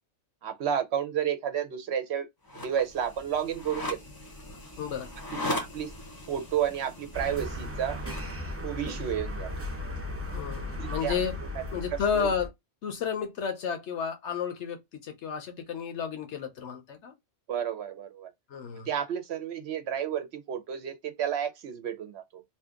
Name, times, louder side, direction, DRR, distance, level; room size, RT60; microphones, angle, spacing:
voice 1, 0.4-2.3 2.6-4.0 5.5-5.9 6.3-8.0 8.6-9.5 10.8-11.2 12.1-12.3 17.5-18.3 18.9-22.4, right 9 dB, 65° right, 0.8 m, -31 dB
sound 1, 2.5-8.3, left 1 dB, 20° left, 0.7 m, -39 dB
voice 2, 4.8-5.1 10.3-11.4 11.7-12.5 12.8-17.1 18.5-18.9, left 7 dB, 70° left, 1.0 m, -32 dB
sound 2, 7.1-12.5, left 1 dB, 15° right, 0.5 m, -36 dB
2.8 x 2.4 x 3.5 m
omnidirectional pair, 1.3 m